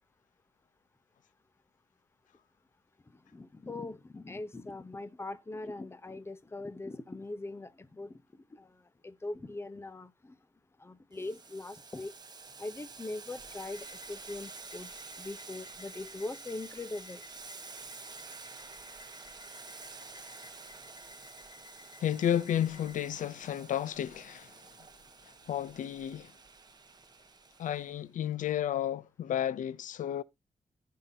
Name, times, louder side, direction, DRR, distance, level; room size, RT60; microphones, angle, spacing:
voice 1, 3.3-8.8 9.0-10.4 10.8-12.1 12.6-14.9 15.2-17.2, left 2 dB, 20° left, 0.7 m, -41 dB
Boiling, 11.1-27.9, right 4 dB, 30° right, 1.1 m, -49 dB
sound 1, 13.5-23.1, left 7 dB, 45° left, 1.7 m, -57 dB
voice 2, 22.0-24.6 25.2-26.3 27.6-30.2, left 10 dB, 90° left, 0.4 m, -32 dB
15.0 x 5.6 x 2.7 m
wide cardioid pair, 140°, 13 cm